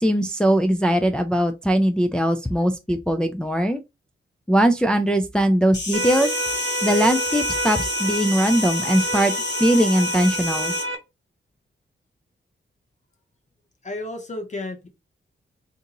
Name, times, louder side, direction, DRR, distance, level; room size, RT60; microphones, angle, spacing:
voice 1, 0.0-3.8 4.5-6.3 6.8-9.3 9.6-10.7, equal, 5° left, 0.3 m, -20 dB
Insect, 5.7-10.8, left 3 dB, 55° left, 1.1 m, -30 dB
sound 1, 5.9-10.9, right 1 dB, 75° right, 0.8 m, -28 dB
voice 2, 13.8-14.9, left 2 dB, 35° left, 0.7 m, -32 dB
2.8 x 2.6 x 3.7 m
wide cardioid pair, 115°, 21 cm